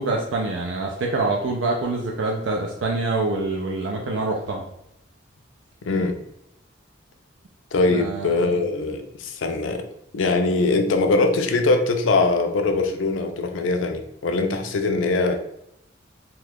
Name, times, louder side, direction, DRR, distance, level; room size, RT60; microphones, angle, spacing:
voice 1, 0.0-4.6 7.9-8.6, right 3 dB, 75° right, 0 dB, 0.5 m, -25 dB
voice 2, 5.8-6.2 7.7-9.8 10.1-15.4, left 3 dB, 85° left, 5 dB, 0.4 m, -22 dB
2.9 x 2.3 x 3.4 m, 0.79 s
head